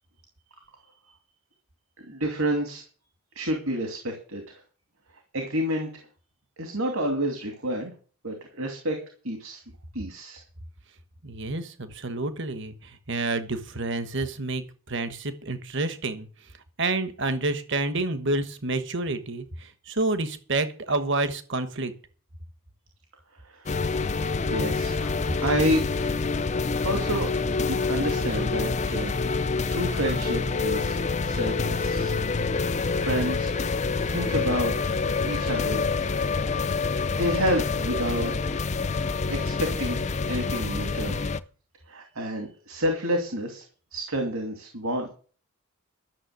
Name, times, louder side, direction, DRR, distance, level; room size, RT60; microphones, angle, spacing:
voice 1, 2.0-2.8 3.3-4.6 5.3-6.1 6.6-7.9 8.2-9.0 9.2-9.6 9.9-10.4 23.4-24.2 24.5-26.4 26.8-27.3 27.6-29.1 29.7-32.1 33.0-33.5 34.1-34.9 35.3-35.9 37.1-38.5 39.3-41.2 41.9-43.6 43.9-45.1, equal, 70° right, 3 dB, 2.6 m, -29 dB
voice 2, 11.2-12.7 13.1-16.3 16.8-19.4 19.9-21.9, right 2 dB, 55° right, 10 dB, 1.3 m, -28 dB
sound 1, 23.7-41.4, left 4 dB, 30° left, 0.5 m, -27 dB
12.5 x 6.8 x 8.1 m, 0.40 s
head